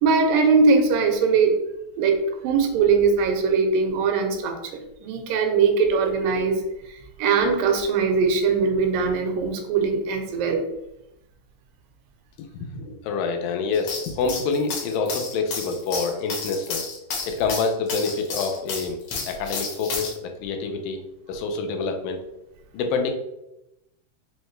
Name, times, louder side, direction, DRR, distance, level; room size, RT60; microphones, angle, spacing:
voice 1, 0.0-1.5 2.0-2.2 2.4-6.6 6.9-10.7, right 5 dB, 85° right, 4 dB, 2.3 m, -21 dB
voice 2, 12.4-16.9 17.3-19.0 19.3-21.0 21.3-22.2 22.7-23.1, left 4 dB, 85° left, 4 dB, 2.2 m, -27 dB
sound 1, 13.7-20.1, left 4 dB, 65° left, 1.7 m, -31 dB
5.5 x 2.2 x 3.1 m, 0.88 s
omnidirectional pair, 3.9 m